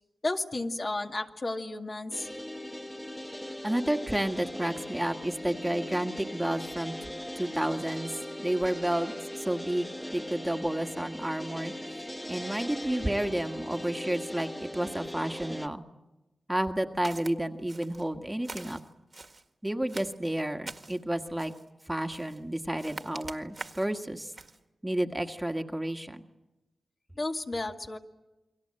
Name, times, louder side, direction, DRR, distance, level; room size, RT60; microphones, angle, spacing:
voice 1, 0.2-2.3 27.2-28.0, left 2 dB, 45° left, 3 dB, 2.2 m, -32 dB
sound 1, 2.1-15.7, left 1 dB, 5° left, 1.3 m, -39 dB
voice 2, 3.6-6.9 7.4-11.7 12.3-15.8 16.5-18.8 19.6-21.5 21.9-24.3 24.8-26.2, right 1 dB, 10° right, 5 dB, 1.8 m, -31 dB
Walk footsteps, 17.0-17.3 17.7-18.1 18.4-19.4 19.9-21.0 21.4-21.7 22.1-22.4 22.8-23.9 24.3-24.6, right 3 dB, 40° right, 1.8 m, -44 dB
29.5 x 23.0 x 7.8 m, 1.0 s
cardioid pair, 60°, 0 cm